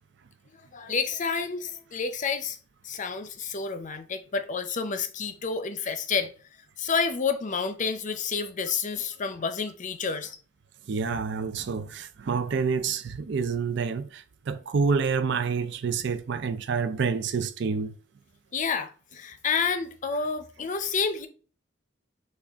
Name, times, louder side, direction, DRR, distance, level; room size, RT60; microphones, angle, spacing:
voice 1, 0.7-2.6 2.8-6.3 6.8-10.4 18.5-21.3, left 5 dB, 40° left, 0.6 m, -29 dB
voice 2, 10.9-17.9, right 5 dB, 65° right, 0.4 m, -28 dB
6.1 x 2.4 x 3.5 m
head